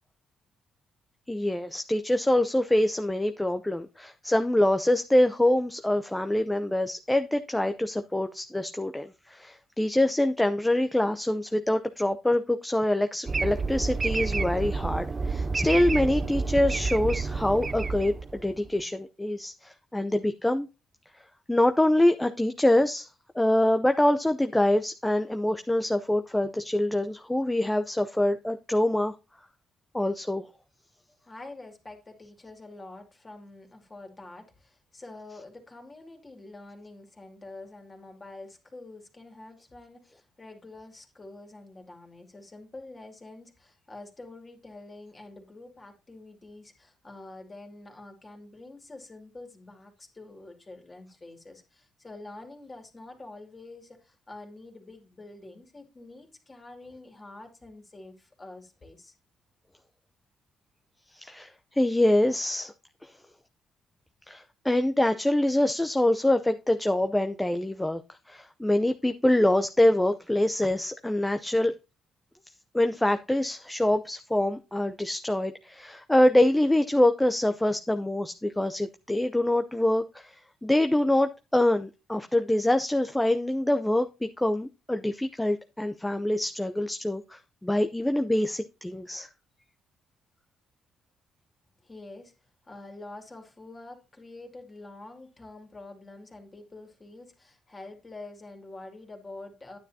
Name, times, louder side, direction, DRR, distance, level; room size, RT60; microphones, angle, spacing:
voice 1, 1.3-20.7 21.5-23.1 23.3-29.1 29.9-30.5 61.1-62.7 63.0-63.1 64.3-68.0 68.3-71.7 72.7-89.3, left 1 dB, 10° left, 0.6 m, -25 dB
sound 1, 13.3-18.7, right 4 dB, 35° right, 0.5 m, -29 dB
voice 2, 31.2-59.1 91.8-99.8, left 2 dB, 25° left, 2.5 m, -46 dB
9.8 x 9.1 x 2.8 m
cardioid pair, 90°, 0 cm